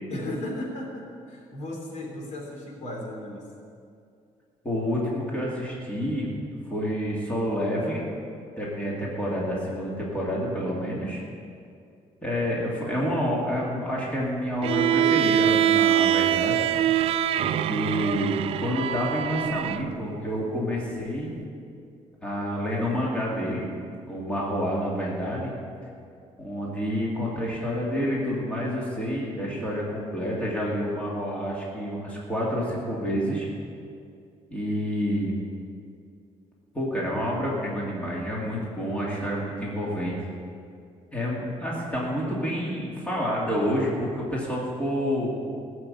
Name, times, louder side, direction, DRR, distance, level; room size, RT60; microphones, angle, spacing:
voice 1, 0.1-3.5 21.1-21.5 27.2-27.4, left 1 dB, 70° left, -1 dB, 3.5 m, -36 dB
voice 2, 4.6-6.3 6.7-8.0 8.6-11.2 12.2-16.6 17.4-21.3 22.2-23.7 24.1-25.5 26.4-33.5 34.5-35.4 36.7-40.2 41.1-45.3, equal, 10° left, -5 dB, 2.5 m, -28 dB
Bowed string instrument, 14.6-19.8, right 11 dB, 55° right, 0.4 m, -24 dB
17.5 x 7.2 x 8.5 m, 2.4 s
cardioid pair, 170°, 12 cm